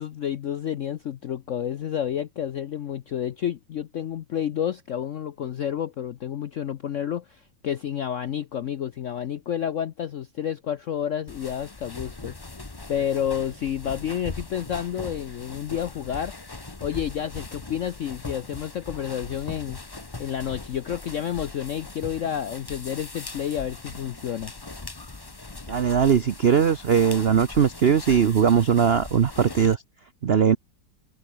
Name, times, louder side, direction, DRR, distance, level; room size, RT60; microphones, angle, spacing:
voice 1, 0.0-12.5 12.9-16.3 16.8-19.8 20.2-24.5, left 9 dB, 70° left, 0.7 m, -30 dB
sound 1, 11.3-29.8, left 3 dB, 20° left, 0.7 m, -40 dB
voice 2, 25.7-29.8 30.2-30.6, right 7 dB, 80° right, 0.5 m, -20 dB
omnidirectional pair, 2.1 m